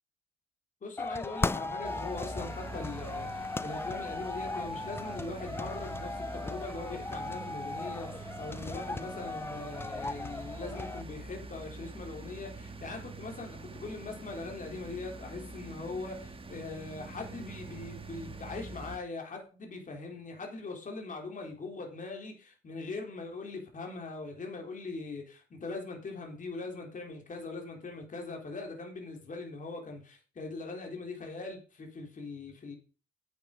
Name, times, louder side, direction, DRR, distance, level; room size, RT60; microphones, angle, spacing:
voice 1, 0.8-32.7, left 3 dB, 40° left, 2 dB, 3.5 m, -41 dB
sound 1, 1.0-11.0, left 3 dB, 10° left, 0.4 m, -37 dB
sound 2, 1.8-19.0, right 3 dB, 25° right, 1.5 m, -45 dB
9.0 x 8.3 x 5.0 m, 0.35 s
cardioid pair, 90°, 20 cm